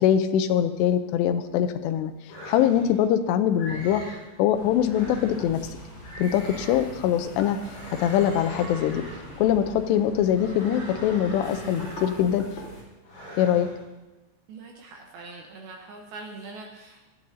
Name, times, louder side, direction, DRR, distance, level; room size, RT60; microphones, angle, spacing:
voice 1, 0.0-2.1 2.5-4.0 4.4-5.6 6.2-7.6 7.9-9.0 9.4-12.5 13.4-13.7, left 10 dB, 80° left, 9 dB, 2.6 m, -23 dB
sound 1, 2.3-3.1 3.6-4.3 4.8-5.5 6.0-7.0 7.5-9.5 10.2-12.4 13.0-13.8, equal, 60° left, 7.0 m, -41 dB
sound 2, 4.5-12.8, left 1 dB, 15° left, 2.8 m, -42 dB
voice 2, 14.5-17.0, right 3 dB, 75° right, 1 dB, 2.4 m, -42 dB
18.0 x 12.5 x 2.7 m, 1.1 s
omnidirectional pair, 5.4 m